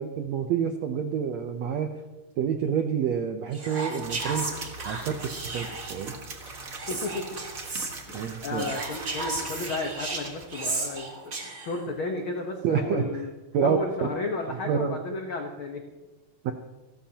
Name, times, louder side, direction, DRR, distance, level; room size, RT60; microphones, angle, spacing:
voice 1, 0.0-2.0 2.4-4.5 4.8-6.2 8.1-8.7 12.6-13.2 13.5-13.8 14.5-15.0 16.4-16.5, right 7 dB, 80° right, 6 dB, 1.5 m, -28 dB
Whispering, 3.5-6.0 6.7-7.9 8.5-11.8, right 3 dB, 30° right, 1.9 m, -34 dB
sound 1, 4.0-11.0, right 3 dB, 50° right, 1.0 m, -41 dB
voice 2, 6.9-7.4 8.1-13.3 13.6-15.8, left 2 dB, 75° left, 2 dB, 1.1 m, -33 dB
29.5 x 13.0 x 2.9 m, 1.1 s
omnidirectional pair, 4.2 m